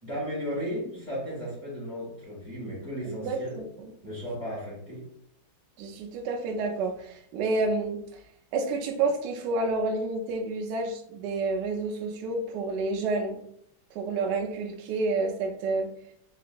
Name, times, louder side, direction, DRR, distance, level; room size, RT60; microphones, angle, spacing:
voice 1, 0.0-3.6 4.0-5.1, equal, 25° left, -8 dB, 1.4 m, -35 dB
voice 2, 3.0-3.9 5.8-8.2 8.5-13.4 13.9-15.9, right 3 dB, 75° right, 2 dB, 1.0 m, -29 dB
3.7 x 2.9 x 2.5 m, 0.68 s
omnidirectional pair, 2.3 m